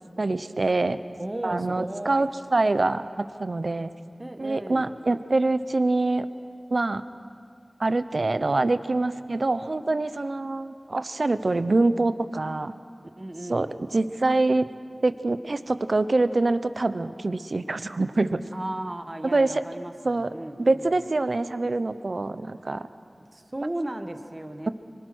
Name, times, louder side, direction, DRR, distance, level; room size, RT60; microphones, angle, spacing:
voice 1, 0.2-1.0 1.4-3.9 4.4-6.3 6.7-7.0 7.8-12.7 13.5-14.6 15.0-18.4 19.2-19.6 20.0-20.3 20.6-22.9, right 2 dB, 65° right, 12 dB, 0.7 m, -25 dB
voice 2, 1.2-2.3 4.2-4.9 13.2-13.8 18.5-20.9 23.3-24.7, right 1 dB, 35° right, 7 dB, 1.5 m, -35 dB
25.0 x 23.0 x 6.3 m, 2.3 s
wide cardioid pair, 55°, 0 cm